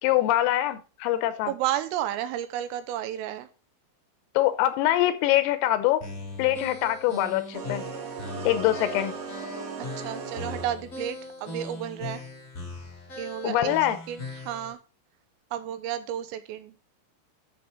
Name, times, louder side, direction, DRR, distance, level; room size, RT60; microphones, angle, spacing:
voice 1, 0.0-1.5 4.4-6.1 6.4-7.8 8.5-9.1 13.4-14.0, left 14 dB, 85° left, 3.5 m, -24 dB
voice 2, 1.5-3.5 9.8-12.2 13.2-13.8 14.1-14.8 15.5-16.8, right 11 dB, 85° right, 3.4 m, -32 dB
sound 1, 6.0-14.7, left 2 dB, 35° left, 1.2 m, -40 dB
sound 2, 7.5-11.0, right 5 dB, 45° right, 3.6 m, -37 dB
11.0 x 7.0 x 3.7 m
omnidirectional pair, 6.0 m